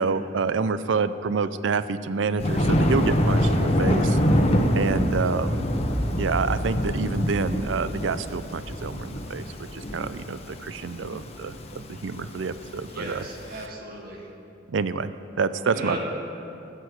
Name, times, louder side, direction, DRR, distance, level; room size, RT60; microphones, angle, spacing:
voice 1, 0.0-4.2 4.7-5.7 6.2-9.5 9.7-13.2 14.7-16.0, right 4 dB, 75° right, 14 dB, 0.5 m, -28 dB
Thunder, 2.4-13.5, equal, 35° left, 0.9 m, -25 dB
voice 2, 12.9-14.3 15.7-16.0, right 1 dB, 50° right, -1 dB, 1.8 m, -35 dB
14.0 x 6.5 x 7.9 m, 2.8 s
head